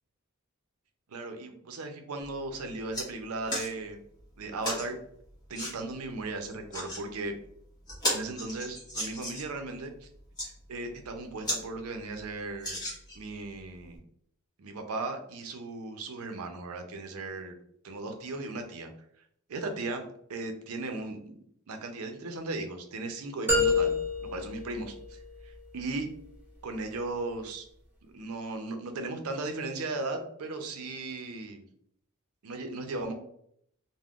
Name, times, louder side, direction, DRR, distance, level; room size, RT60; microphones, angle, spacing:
voice 1, 1.1-4.0 4.4-5.0 5.5-7.3 8.1-10.1 10.4-12.8 13.2-14.0 14.6-17.5 17.8-18.9 19.5-21.3 21.7-23.9 24.2-25.2 25.7-26.1 26.6-27.7 28.0-31.6 32.4-33.1, right 2 dB, 85° right, 5 dB, 0.5 m, -37 dB
sound 1, 2.2-2.4 2.7-3.1 3.5-3.7 4.6-4.9 5.5-5.7 6.5-7.0 7.5-7.6 7.9-9.5 10.2-10.5 11.0-11.1 11.4-11.6 12.0-12.1 12.6-13.3 14.0-14.1, equal, 20° left, 1.2 m, -34 dB
sound 2, 23.5-25.5, left 3 dB, 10° right, 0.6 m, -28 dB
3.5 x 2.1 x 2.3 m, 0.69 s
head